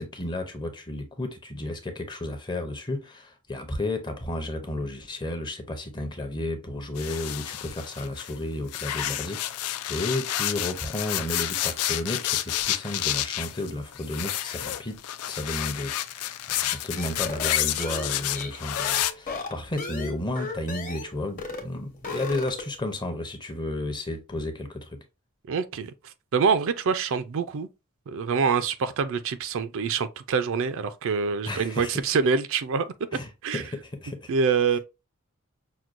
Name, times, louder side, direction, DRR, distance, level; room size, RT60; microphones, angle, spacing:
voice 1, 0.0-15.0 15.3-25.0 31.5-32.0 33.1-34.3, left 1 dB, 20° left, 0.7 m, -33 dB
sound 1, 7.0-8.3 8.7-19.1, left 12 dB, 85° left, 0.4 m, -30 dB
sound 2, 17.0-21.1 21.4-21.7 21.9-22.8, left 3 dB, 40° left, 1.0 m, -36 dB
voice 2, 25.5-27.7 28.1-32.9 33.4-33.6 34.3-34.8, right 5 dB, 60° right, 0.4 m, -25 dB
5.9 x 2.2 x 2.5 m
head